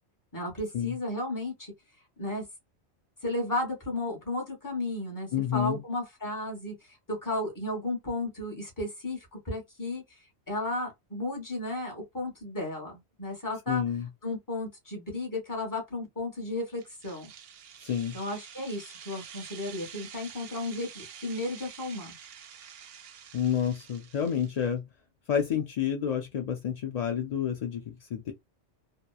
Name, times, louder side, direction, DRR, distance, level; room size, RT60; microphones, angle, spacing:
voice 1, 0.3-1.7 2.2-2.4 3.2-6.7 7.1-10.0 10.5-13.8 14.2-17.3 18.1-22.1, left 2 dB, 20° left, 0.9 m, -34 dB
voice 2, 5.3-5.8 13.7-14.1 17.8-18.2 23.3-24.8 25.3-28.3, left 8 dB, 65° left, 0.4 m, -29 dB
sound 1, 16.8-24.7, right 8 dB, 65° right, 0.7 m, -48 dB
2.8 x 2.1 x 2.2 m
omnidirectional pair, 1.2 m